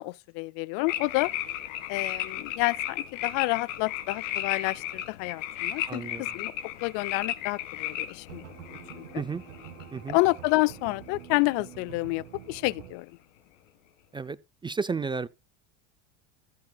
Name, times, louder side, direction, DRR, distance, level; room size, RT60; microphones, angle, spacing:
voice 1, 0.0-1.3 1.9-6.5 6.8-8.4 8.9-9.0 10.1-13.1, left 23 dB, 65° left, 0.5 m, -29 dB
sound 1, 0.9-11.1 11.4-11.8, left 11 dB, 80° left, 1.6 m, -35 dB
voice 2, 5.9-6.4 9.1-9.4 9.9-10.2 14.1-14.4 14.6-15.3, right 5 dB, 15° right, 0.4 m, -32 dB
sound 2, 8.3-12.9, right 13 dB, 85° right, 1.9 m, -46 dB
15.0 x 7.2 x 2.3 m
supercardioid pair, 105°, 37 cm